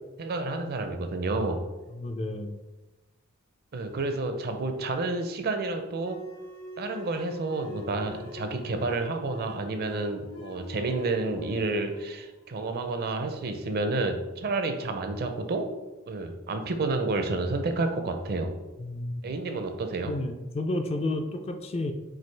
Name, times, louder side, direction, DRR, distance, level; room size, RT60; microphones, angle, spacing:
voice 1, 0.2-1.6 3.7-6.2 6.8-15.7 16.1-18.5 19.2-20.1, right 3 dB, 50° right, 7 dB, 0.5 m, -30 dB
voice 2, 1.9-2.6 18.8-19.3 20.0-21.9, left 2 dB, 30° left, 6 dB, 0.3 m, -31 dB
sound 1, 5.9-13.1, left 2 dB, 70° left, 0.9 m, -46 dB
6.1 x 2.4 x 3.2 m, 1.1 s
head